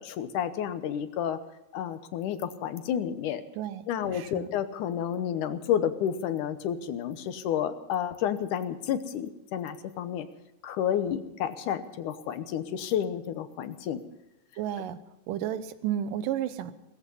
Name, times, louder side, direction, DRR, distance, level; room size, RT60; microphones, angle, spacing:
voice 1, 0.0-1.4 1.7-3.4 3.9-10.3 10.6-14.0, left 9 dB, 75° left, 11 dB, 2.4 m, -30 dB
voice 2, 3.5-4.5 14.6-15.0 15.3-16.7, right 10 dB, 85° right, 13 dB, 2.6 m, -32 dB
18.0 x 14.5 x 5.5 m, 0.94 s
omnidirectional pair, 3.8 m